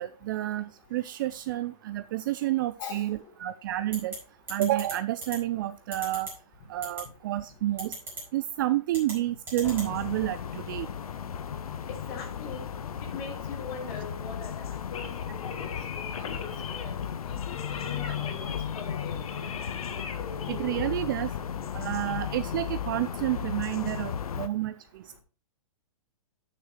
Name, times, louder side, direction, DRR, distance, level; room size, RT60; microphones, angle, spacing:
voice 1, 0.0-4.1 4.5-6.3 6.7-7.9 8.3-10.9 18.0-18.1 20.5-21.3 21.7-24.7, right 14 dB, 35° right, 0.4 m, -30 dB
sound 1, 3.9-4.2 4.5-4.9 5.2-5.4 5.9-6.3 6.8-7.0 7.8-8.2 8.9-9.1 9.5-9.9, right 2 dB, 10° right, 4.7 m, -36 dB
sound 2, 9.6-24.5, left 8 dB, 80° left, 0.9 m, -35 dB
voice 2, 11.9-12.7 13.0-16.5 16.8-17.0 17.2-17.4 17.7-19.2, left 5 dB, 35° left, 3.2 m, -42 dB
sound 3, 14.9-23.1, left 6 dB, 65° left, 1.7 m, -41 dB
12.5 x 6.4 x 3.2 m
hypercardioid pair, 150°, 18 cm